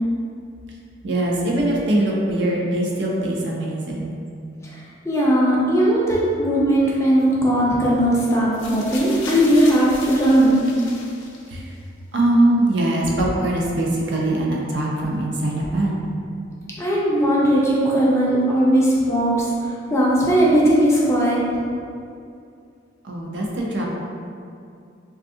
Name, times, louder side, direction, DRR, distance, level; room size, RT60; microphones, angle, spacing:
voice 1, 1.0-4.1 11.5-11.7 12.1-16.0 23.0-23.9, right 1 dB, 60° right, -3 dB, 0.5 m, -22 dB
voice 2, 4.7-10.6 16.8-21.4, right 1 dB, 15° left, -6 dB, 0.4 m, -18 dB
sound 1, 8.5-11.8 12.7-12.8, left 3 dB, 70° left, 0.5 m, -37 dB
3.3 x 2.4 x 2.6 m, 2.4 s
head